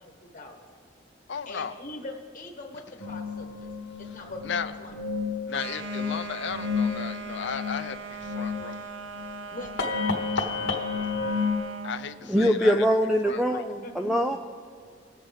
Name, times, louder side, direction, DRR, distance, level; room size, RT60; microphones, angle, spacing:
voice 1, 0.2-0.6 1.4-3.7 4.0-4.9 9.5-9.7 13.8-14.4, left 2 dB, 40° left, 1 dB, 1.1 m, -42 dB
voice 2, 1.3-1.7 4.4-4.7 5.5-8.8 10.4-10.5 11.8-12.8 13.2-13.6, left 6 dB, 65° left, 11 dB, 0.5 m, -35 dB
sound 1, 3.0-11.6, left 4 dB, 90° left, 1.3 m, -31 dB
sound 2, 5.5-12.0, right 4 dB, 85° right, 0.7 m, -40 dB
voice 3, 12.3-14.4, equal, 5° right, 4 dB, 0.3 m, -23 dB
21.0 x 7.5 x 3.5 m, 2.1 s
head